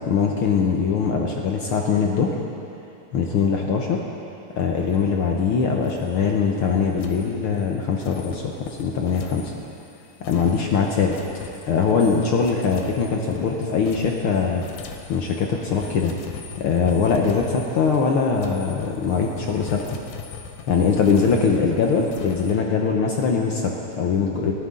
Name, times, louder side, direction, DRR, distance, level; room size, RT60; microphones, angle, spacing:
voice 1, 0.1-2.3 3.1-4.0 4.5-9.5 10.3-11.1 11.7-14.6 15.1-16.1 16.6-20.0 20.7-24.5, left 5 dB, 65° left, 0 dB, 1.4 m, -22 dB
sound 1, 4.8-5.6 5.8-6.2 6.9-22.6, left 7 dB, 80° left, 2.3 m, -41 dB
sound 2, 15.5-17.6, equal, 35° left, 5.1 m, -45 dB
29.0 x 9.7 x 3.8 m, 2.8 s
omnidirectional pair, 3.3 m